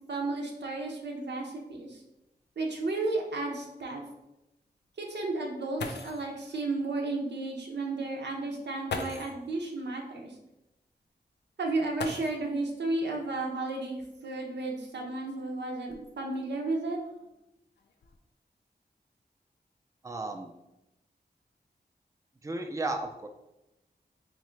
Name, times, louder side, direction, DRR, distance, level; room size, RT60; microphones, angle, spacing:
voice 1, 0.1-2.0 2.6-4.0 5.0-10.3 11.6-17.0, right 2 dB, 90° right, 0 dB, 0.8 m, -33 dB
sound 1, 1.9-2.0 2.4-2.5 3.1-3.2 5.4-5.5 5.8-6.3 7.6-7.7 8.8-9.4 11.9-12.7 14.1-14.2 14.9-16.3 17.0-17.4 17.8-18.2, left 4 dB, 80° left, 0.4 m, -40 dB
voice 2, 20.0-20.5 22.4-23.3, right 2 dB, 20° right, 5 dB, 0.4 m, -34 dB
3.7 x 3.2 x 3.1 m, 0.91 s
wide cardioid pair, 55°, 17 cm